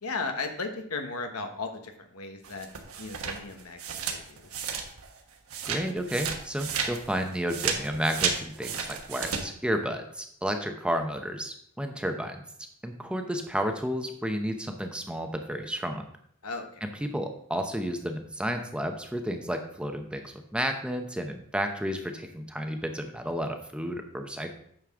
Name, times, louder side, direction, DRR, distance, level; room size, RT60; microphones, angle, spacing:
voice 1, 0.0-2.7 3.0-4.6 16.4-16.8, left 3 dB, 85° left, 6 dB, 1.1 m, -36 dB
sound 1, 2.4-5.2 5.5-9.4, right 6 dB, 75° right, 1.2 m, -32 dB
voice 2, 5.6-12.4 12.8-16.0 16.8-24.5, equal, 5° right, 5 dB, 0.7 m, -32 dB
9.2 x 6.4 x 3.6 m, 0.67 s
head